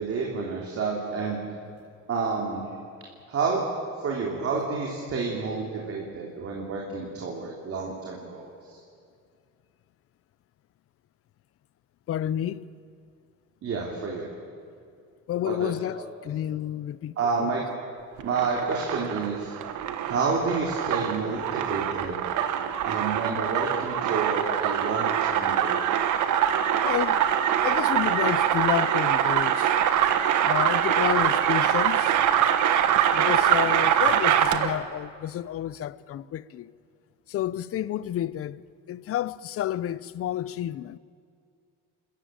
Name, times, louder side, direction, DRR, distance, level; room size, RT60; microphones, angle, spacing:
voice 1, 0.0-1.4 2.1-2.7 3.3-3.7 4.0-8.8 13.6-14.3 15.4-15.7 17.2-17.6 18.2-19.5 20.0-22.3 22.8-25.8, right 4 dB, 50° right, 3.2 m, -29 dB
voice 2, 12.1-12.7 15.3-17.5 26.8-27.3 27.6-32.2 33.1-36.7 37.3-41.0, left 12 dB, 50° left, 0.6 m, -30 dB
sound 1, 18.2-34.8, right 10 dB, 75° right, 1.4 m, -24 dB
30.0 x 14.0 x 9.0 m
cardioid pair, 145°, 30 cm